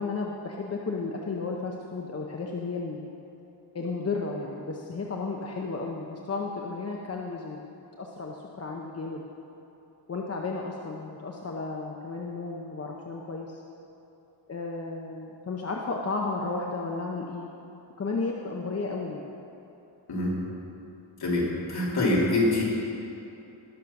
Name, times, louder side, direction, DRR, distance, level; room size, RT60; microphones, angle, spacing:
voice 1, 0.0-3.0 3.7-7.6 8.0-9.2 10.1-13.6 14.5-17.5 18.0-19.3, left 3 dB, 30° left, 0 dB, 0.7 m, -33 dB
voice 2, 21.2-22.6, left 2 dB, 50° left, -6 dB, 3.3 m, -25 dB
19.0 x 6.8 x 5.8 m, 2.9 s
wide cardioid pair, 180°, 47 cm